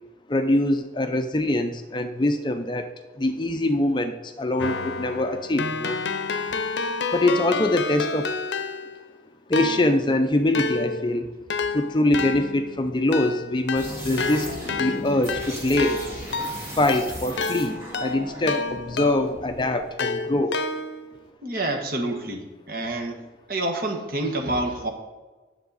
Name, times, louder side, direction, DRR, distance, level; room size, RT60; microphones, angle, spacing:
voice 1, 0.3-2.9 3.2-6.0 7.1-8.4 9.5-11.3 11.7-14.5 14.8-16.0 16.8-20.6, left 1 dB, 25° left, 7 dB, 0.5 m, -23 dB
Keyboard (musical), 4.6-9.1 9.5-19.4 20.0-21.2, left 4 dB, 80° left, 0.6 m, -30 dB
sound 1, 13.8-19.9, equal, 15° right, 2.1 m, -37 dB
voice 2, 21.4-23.2 23.5-24.9, right 1 dB, 50° right, 3 dB, 1.2 m, -28 dB
9.8 x 7.3 x 4.0 m, 1.2 s
head